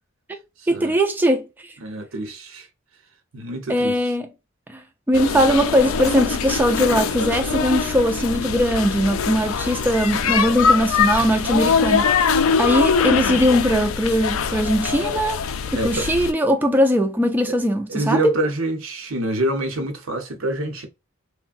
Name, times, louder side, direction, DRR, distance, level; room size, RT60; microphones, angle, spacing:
voice 1, 0.7-1.7 3.7-4.3 4.7-15.4 15.7-18.3, equal, 10° right, 0.3 m, -20 dB
voice 2, 1.8-2.7 3.3-4.1 15.7-16.1 17.5-17.6 17.9-20.9, right 1 dB, 75° right, 0.8 m, -26 dB
sound 1, 5.1-16.3, left 6 dB, 90° left, 0.4 m, -22 dB
3.2 x 2.1 x 2.4 m
head